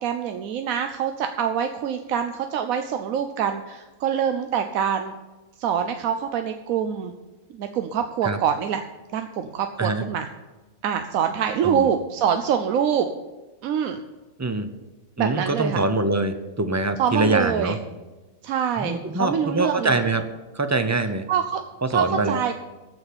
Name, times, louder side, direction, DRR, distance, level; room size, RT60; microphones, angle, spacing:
voice 1, 0.0-5.1 5.6-7.1 7.5-8.8 9.1-10.3 10.8-13.1 13.6-14.0 15.2-15.8 17.0-17.8 18.4-20.0 21.3-21.6 21.9-22.5, right 8 dB, 90° right, 7 dB, 1.1 m, -25 dB
voice 2, 15.2-17.8 18.8-20.2 20.5-21.3 21.8-22.4, right 2 dB, 25° right, 9 dB, 0.3 m, -24 dB
14.0 x 4.8 x 8.5 m, 1.2 s
omnidirectional pair, 1.4 m